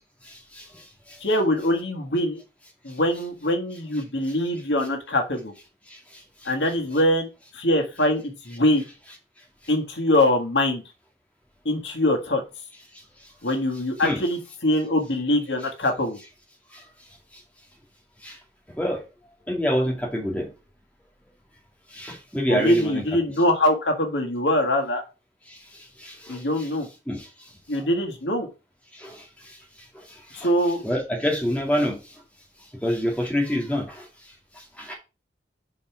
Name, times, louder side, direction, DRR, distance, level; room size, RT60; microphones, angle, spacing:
voice 1, 1.2-2.4 2.8-5.5 6.4-7.3 7.5-8.8 9.7-10.8 11.6-12.4 13.4-16.2 22.5-25.0 26.3-26.9 27.7-28.5 30.3-30.8, left 1 dB, 80° left, 1.6 m, -23 dB
voice 2, 19.5-20.5 21.9-23.0 26.0-26.7 27.1-27.3 29.0-29.2 30.3-30.5 30.8-32.0 32.8-34.0 34.8-34.9, equal, 10° left, 2.0 m, -26 dB
5.4 x 4.6 x 5.8 m
head